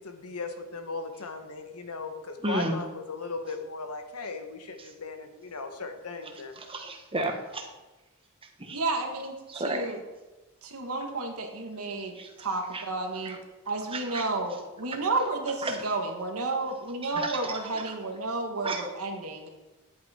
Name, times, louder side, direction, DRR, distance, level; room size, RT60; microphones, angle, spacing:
voice 1, 0.0-6.6, left 3 dB, 85° left, 6 dB, 1.3 m, -37 dB
voice 2, 2.4-2.8 6.6-7.7 8.6-8.8 9.5-10.0 12.1-12.3 12.7-12.8 13.2-13.4 13.9-14.2 15.6-15.8 17.1-17.8 18.6-18.8, right 2 dB, 25° right, 3 dB, 1.3 m, -32 dB
voice 3, 8.7-10.0 10.6-13.4 13.6-19.5, right 3 dB, 70° right, 3 dB, 1.5 m, -31 dB
10.5 x 8.5 x 4.3 m, 1.1 s
head